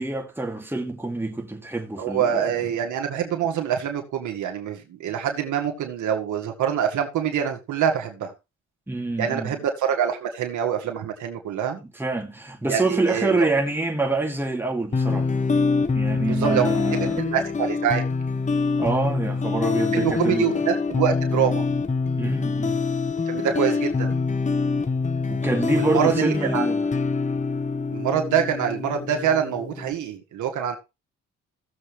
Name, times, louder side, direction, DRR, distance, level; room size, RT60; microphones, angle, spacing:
voice 1, 0.0-2.5 8.9-9.5 11.8-15.3 15.9-17.3 18.8-20.5 22.2-22.8 25.3-26.9, right 2 dB, 5° right, 2.6 m, -26 dB
voice 2, 2.0-8.3 9.2-11.8 12.7-13.5 16.2-18.1 19.9-21.7 23.3-24.2 25.7-26.6 27.9-30.8, right 8 dB, 75° right, 1.9 m, -25 dB
sound 1, 14.9-29.9, left 4 dB, 25° left, 1.0 m, -25 dB
16.0 x 7.2 x 3.3 m
cardioid pair, 90°, 30 cm